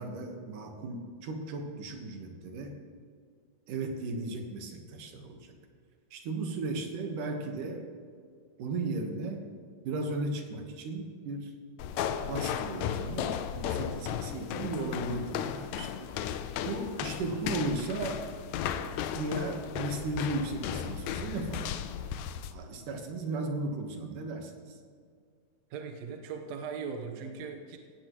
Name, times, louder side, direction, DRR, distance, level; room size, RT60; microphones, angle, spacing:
voice 1, 0.0-2.8 3.7-5.5 6.1-7.9 8.6-9.5 9.8-11.5 12.2-15.9 16.6-18.2 19.1-21.9 22.5-24.8, right 2 dB, 80° right, 3 dB, 3.0 m, -36 dB
sound 1, 11.8-22.5, left 9 dB, 75° left, 1.8 m, -35 dB
voice 2, 25.7-27.8, right 5 dB, 65° right, 3 dB, 2.1 m, -39 dB
17.5 x 16.0 x 3.1 m, 2.1 s
omnidirectional pair, 3.6 m